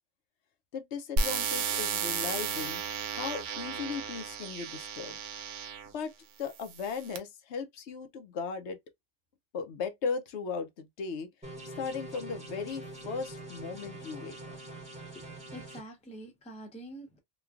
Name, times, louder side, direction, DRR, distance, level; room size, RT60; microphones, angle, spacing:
voice 1, 0.7-2.8 3.1-5.2 5.9-6.1 6.4-8.8 9.5-11.3 11.8-14.4, left 5 dB, 70° left, 0.9 m, -37 dB
sound 1, 1.2-5.9 6.6-7.2, right 5 dB, 80° right, 0.9 m, -33 dB
sound 2, 11.4-15.8, right 2 dB, 5° right, 1.0 m, -44 dB
voice 2, 15.1-17.2, right 1 dB, 10° left, 0.4 m, -46 dB
3.1 x 2.2 x 2.3 m
omnidirectional pair, 1.2 m